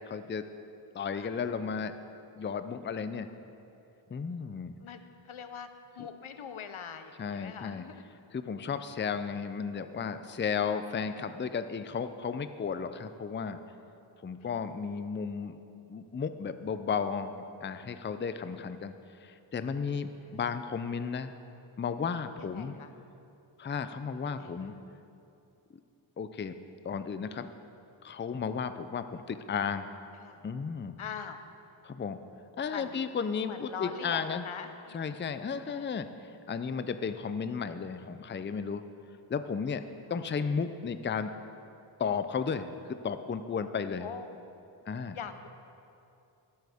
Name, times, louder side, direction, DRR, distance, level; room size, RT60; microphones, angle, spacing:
voice 1, 0.1-0.4 0.9-1.9 2.4-3.3 4.1-4.8 6.0-6.1 7.2-7.8 8.3-13.6 14.2-15.6 15.9-18.9 19.2-21.3 21.8-22.8 23.6-24.7 26.2-26.6 26.8-27.5 28.0-29.9 30.4-31.0 31.8-32.2 32.6-34.4 34.9-36.1 36.5-38.8 39.3-39.8 40.1-41.3 42.0-42.7 43.0-44.1 44.9-45.2, left 6 dB, 25° left, 10 dB, 0.4 m, -34 dB
voice 2, 4.8-5.7 5.9-8.0 20.3-20.4 22.4-22.9 24.2-24.5 30.2-30.4 31.0-31.4 32.7-33.0 33.4-35.1 35.6-35.9 40.1-40.3 44.0-44.4 45.1-45.5, left 7 dB, 90° left, 9 dB, 0.6 m, -43 dB
13.0 x 7.8 x 3.5 m, 2.7 s
wide cardioid pair, 50°, 48 cm